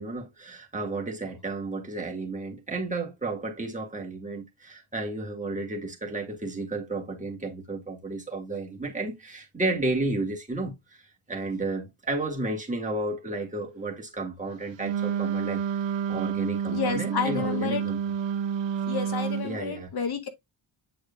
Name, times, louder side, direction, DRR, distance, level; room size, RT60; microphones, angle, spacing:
voice 1, 0.0-11.0 11.3-18.0 19.4-19.9, right 2 dB, 15° right, 2.1 m, -32 dB
Wind instrument woodwind instrument, 14.8-19.5, right 7 dB, 65° right, 0.8 m, -29 dB
voice 2, 16.7-17.8 18.9-20.2, left 6 dB, 50° left, 1.0 m, -30 dB
8.7 x 4.8 x 2.4 m
wide cardioid pair, 140°, 48 cm